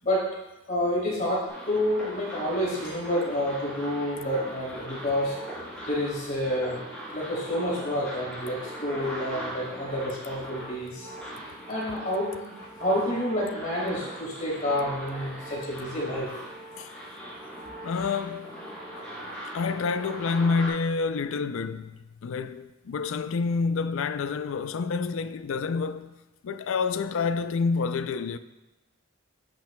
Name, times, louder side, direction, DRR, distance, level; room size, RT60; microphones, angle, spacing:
voice 1, 0.7-5.4 5.9-6.8 7.1-11.1 11.7-16.4, left 1 dB, 35° left, 2.9 m, -29 dB
sound 1, 1.5-20.7, equal, 5° left, 3.0 m, -40 dB
voice 2, 17.8-18.6 19.5-26.1 26.4-28.4, left 4 dB, 60° left, 0.4 m, -28 dB
10.0 x 8.8 x 2.2 m
head